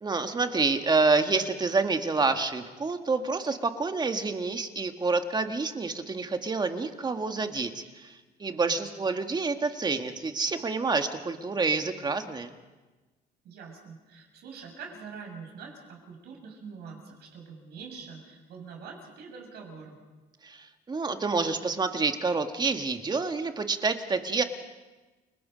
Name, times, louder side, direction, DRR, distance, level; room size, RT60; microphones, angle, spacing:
voice 1, 0.0-12.5 20.4-24.4, right 4 dB, 25° right, 6 dB, 1.8 m, -28 dB
voice 2, 8.5-8.9 13.4-20.0, right 5 dB, 75° right, 1 dB, 7.2 m, -45 dB
30.0 x 19.5 x 5.3 m, 1.2 s
cardioid pair, 110°, 17 cm